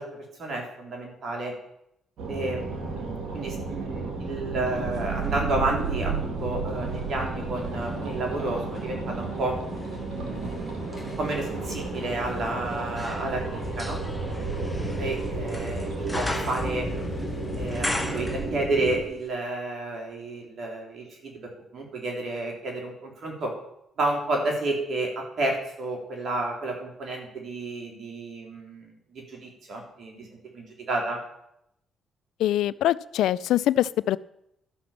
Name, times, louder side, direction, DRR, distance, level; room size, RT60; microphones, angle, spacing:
voice 1, 0.0-1.5 2.3-9.6 10.1-14.0 15.0-16.9 17.6-23.5 24.0-30.3 30.5-31.2, right 2 dB, 60° right, 1 dB, 3.5 m, -31 dB
sound 1, 2.2-19.0, right 3 dB, 75° right, 2.3 m, -33 dB
sound 2, 4.9-7.1 7.6-19.0 19.3-19.4, left 1 dB, 5° left, 1.9 m, -39 dB
sound 3, 5.8-18.1, left 2 dB, 30° left, 2.4 m, -40 dB
voice 2, 32.4-34.2, left 13 dB, 80° left, 19 dB, 0.3 m, -23 dB
12.5 x 6.0 x 7.2 m, 0.79 s
supercardioid pair, 65°, 0 cm